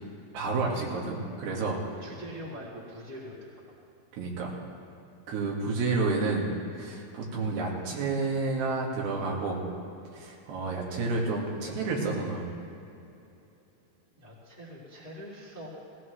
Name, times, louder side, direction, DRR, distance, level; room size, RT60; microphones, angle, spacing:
voice 1, 0.3-1.8 4.1-4.5 5.3-6.5 6.7-9.6 10.1-12.4, right 3 dB, 80° right, -2 dB, 4.1 m, -30 dB
voice 2, 2.0-3.8 14.1-15.7, equal, 20° left, -7 dB, 1.5 m, -43 dB
18.0 x 18.0 x 3.3 m, 2.7 s
omnidirectional pair, 4.8 m